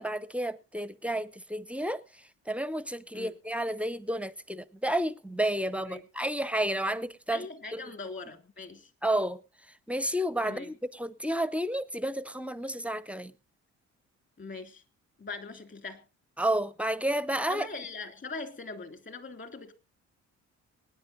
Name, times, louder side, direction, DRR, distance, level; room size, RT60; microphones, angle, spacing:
voice 1, 0.0-7.5 7.7-7.8 9.0-13.3 16.4-17.7, right 1 dB, 5° right, 0.6 m, -31 dB
voice 2, 7.3-8.9 10.4-10.7 14.4-14.8 15.2-16.0 17.5-19.7, left 3 dB, 40° left, 2.6 m, -41 dB
24.5 x 9.6 x 2.7 m
cardioid pair, 90°, 30 cm